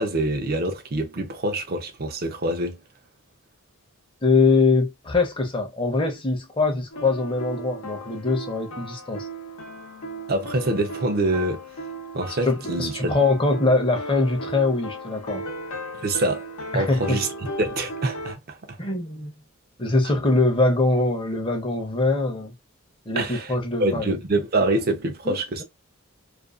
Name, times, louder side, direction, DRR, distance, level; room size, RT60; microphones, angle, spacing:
voice 1, 0.0-2.8 10.3-11.6 12.1-13.2 16.0-16.4 16.7-18.8 23.2-23.5 23.8-25.6, right 2 dB, 45° right, 0.5 m, -25 dB
voice 2, 4.2-9.3 12.5-15.5 16.7-17.2 18.8-19.3 19.8-22.5 23.1-24.2 25.3-25.6, left 3 dB, 25° left, 0.6 m, -23 dB
sound 1, 6.9-18.3, right 1 dB, 90° left, 0.7 m, -36 dB
2.5 x 2.2 x 2.3 m
head